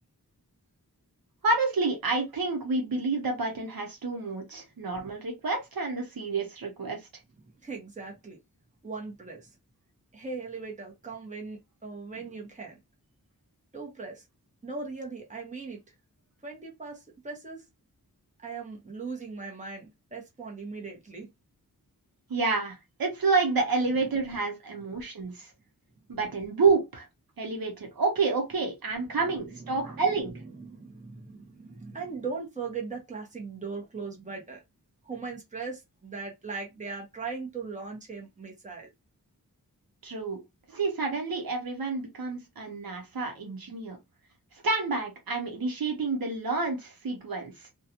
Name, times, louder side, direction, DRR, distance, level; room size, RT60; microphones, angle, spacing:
voice 1, 1.4-7.0 22.3-25.5 26.1-27.1 27.4-30.3 40.0-40.4 40.7-44.0 44.6-47.7, right 3 dB, 70° right, 0.8 m, -29 dB
voice 2, 7.6-8.4 8.8-9.5 10.1-12.7 13.7-14.2 14.6-15.9 16.4-17.6 18.4-21.3 29.1-30.0 30.5-34.6 35.0-38.9, right 4 dB, 20° right, 0.9 m, -39 dB
2.4 x 2.2 x 2.8 m
wide cardioid pair, 85°, 36 cm